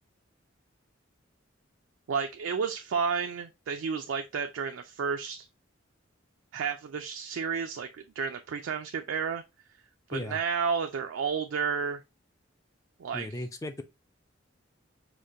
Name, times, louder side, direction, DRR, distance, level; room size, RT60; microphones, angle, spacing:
voice 1, 2.1-5.5 6.5-7.9 8.2-9.4 10.1-12.0 13.0-13.4, right 6 dB, 85° right, 0.4 m, -31 dB
voice 2, 13.1-13.8, left 1 dB, 15° left, 0.3 m, -36 dB
5.0 x 2.1 x 2.7 m
head